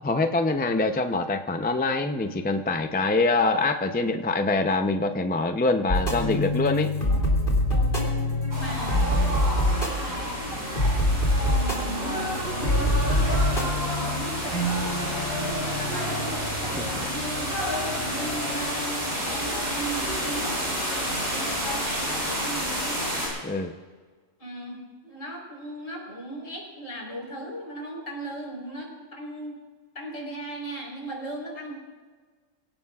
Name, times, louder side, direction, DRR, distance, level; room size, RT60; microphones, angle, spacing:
voice 1, 0.0-6.9 16.8-16.9 23.4-23.7, left 3 dB, 15° left, 6 dB, 0.4 m, -24 dB
sound 1, 5.9-18.5, left 1 dB, 40° left, 2.9 m, -26 dB
sound 2, 8.5-23.3, equal, 50° right, 6.3 m, -30 dB
voice 2, 8.6-15.0 15.4-17.5 17.9-20.6 21.2-23.2 24.4-29.6 29.9-31.7, right 1 dB, 70° left, -2 dB, 4.6 m, -37 dB
23.5 x 17.0 x 2.4 m, 1.4 s
omnidirectional pair, 1.3 m